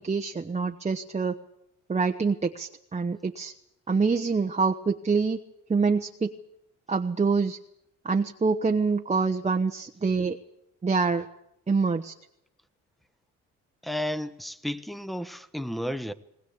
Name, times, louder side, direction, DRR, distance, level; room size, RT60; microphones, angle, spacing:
voice 1, 0.0-1.4 1.9-3.5 3.9-5.4 5.7-6.3 6.9-7.6 8.0-10.4 10.8-11.3 11.7-12.1, right 4 dB, 20° right, 1.0 m, -26 dB
voice 2, 13.8-16.1, left 1 dB, ahead, 1.1 m, -32 dB
20.0 x 20.0 x 8.4 m
cardioid pair, 90°, 30 cm